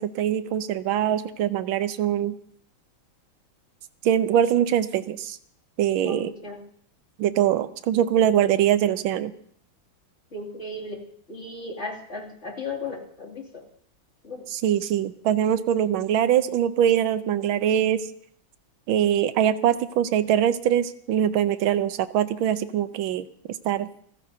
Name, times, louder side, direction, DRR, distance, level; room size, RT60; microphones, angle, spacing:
voice 1, 0.0-2.4 4.0-5.4 5.8-6.3 7.2-9.3 14.5-18.0 18.9-23.3 23.6-23.9, right 10 dB, 75° right, 12 dB, 1.6 m, -23 dB
voice 2, 6.0-6.6 10.3-13.6 14.2-14.4, left 3 dB, 30° left, -3 dB, 3.0 m, -36 dB
28.0 x 15.5 x 2.8 m, 0.63 s
omnidirectional pair, 2.3 m